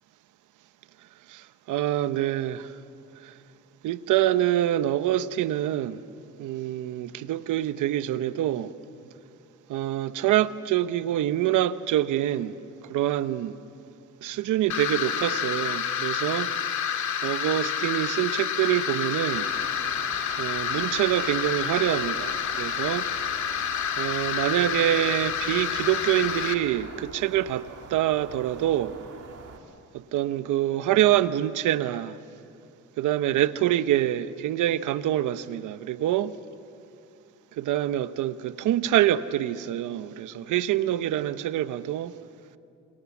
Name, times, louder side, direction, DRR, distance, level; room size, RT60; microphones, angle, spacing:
voice 1, 1.3-2.7 3.2-3.3 3.8-6.0 6.4-8.7 9.7-12.6 12.9-13.6 14.2-16.5 17.2-19.5 20.4-23.1 24.0-28.9 30.1-32.2 33.0-36.3 37.6-42.1, right 12 dB, 85° right, 1.0 m, -25 dB
sound 1, 14.7-26.5, left 8 dB, 70° left, 2.1 m, -29 dB
sound 2, 19.3-29.6, right 5 dB, 55° right, 2.9 m, -45 dB
28.5 x 26.5 x 7.2 m
cardioid pair, 90°, 30 cm